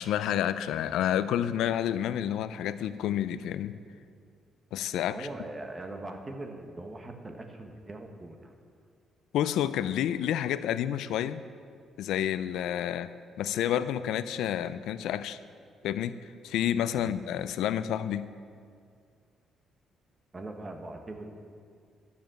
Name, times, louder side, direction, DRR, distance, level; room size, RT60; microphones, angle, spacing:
voice 1, 0.0-3.7 4.7-5.3 9.3-11.4 12.0-15.4 15.8-18.3, left 10 dB, 90° left, 14 dB, 0.4 m, -29 dB
voice 2, 5.1-8.5 16.9-17.1 20.3-21.3, right 2 dB, 25° right, 4 dB, 1.2 m, -41 dB
11.5 x 7.2 x 7.5 m, 2.2 s
cardioid pair, 125°, 0 cm